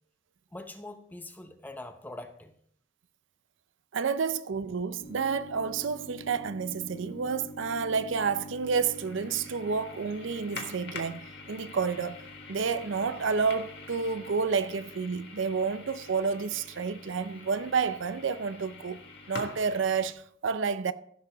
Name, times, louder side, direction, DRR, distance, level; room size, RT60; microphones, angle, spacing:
voice 1, 0.5-2.5, left 2 dB, 10° left, 0.7 m, -43 dB
voice 2, 3.9-12.2 12.5-20.9, right 5 dB, 70° right, 0.5 m, -30 dB
sound 1, 5.0-20.1, left 2 dB, 55° left, 1.8 m, -45 dB
15.0 x 6.9 x 3.8 m
head